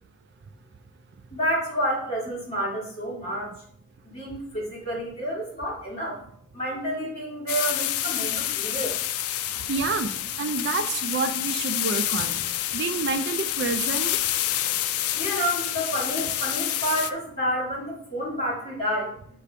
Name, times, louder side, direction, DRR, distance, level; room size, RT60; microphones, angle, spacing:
voice 1, 1.3-3.5 4.0-6.2 6.5-9.0 15.1-19.4, equal, 30° left, -6 dB, 2.6 m, -29 dB
sound 1, 7.5-17.1, left 12 dB, 80° left, 0.4 m, -28 dB
voice 2, 9.7-12.4 12.7-14.2, right 4 dB, 50° right, 9 dB, 0.4 m, -28 dB
6.6 x 3.4 x 5.0 m, 0.64 s
head